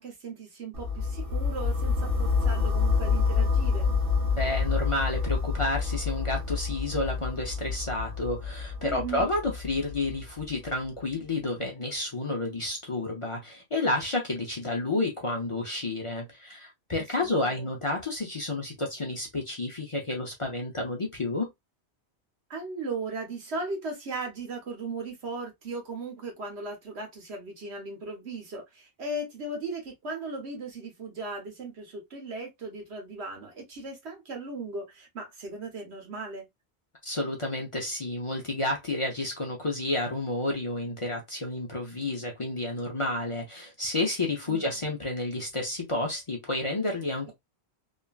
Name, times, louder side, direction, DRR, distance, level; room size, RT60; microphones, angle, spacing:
voice 1, 0.0-3.9 8.8-9.3 17.2-17.7 22.5-36.5 44.5-44.8, right 3 dB, 80° right, 1.3 m, -37 dB
sound 1, 0.7-10.7, left 5 dB, 55° right, 1.0 m, -28 dB
voice 2, 4.4-21.5 37.0-47.3, left 2 dB, 35° left, 0.6 m, -30 dB
3.0 x 2.4 x 2.3 m
omnidirectional pair, 1.1 m